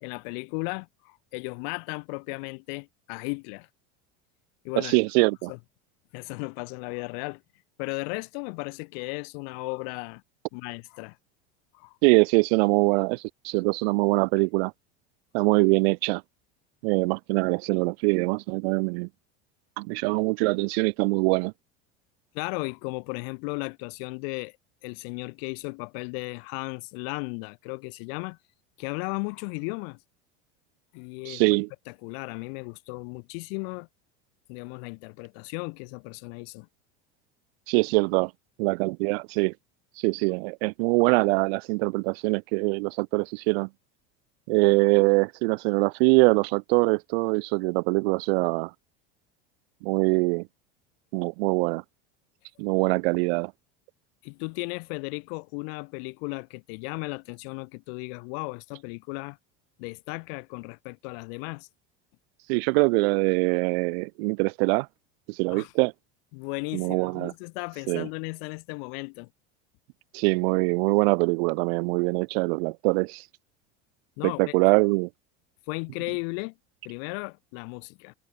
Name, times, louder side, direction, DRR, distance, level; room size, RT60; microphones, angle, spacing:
voice 1, 0.0-3.7 4.6-5.0 5.5-5.6 6.1-7.4 7.8-10.2 10.5-11.2 11.7-12.0 22.3-24.6 24.8-28.4 28.8-30.0 30.9-31.4 32.0-33.9 34.5-36.7 54.2-59.4 59.8-61.7 65.5-65.7 66.3-69.3 74.2-74.6 75.7-76.5 76.8-78.1, left 39 dB, 70° left, 1.1 m, -35 dB
voice 2, 4.8-5.5 12.0-14.7 15.3-16.2 16.8-19.1 19.8-21.5 31.3-31.7 37.7-38.3 38.6-39.5 40.0-43.7 44.5-48.7 49.8-50.5 51.1-51.8 52.6-53.5 62.5-64.9 65.3-65.9 66.7-67.3 67.9-68.1 70.1-73.2 74.2-75.1, right 30 dB, 75° right, 0.9 m, -23 dB
supercardioid pair, 135°, 31 cm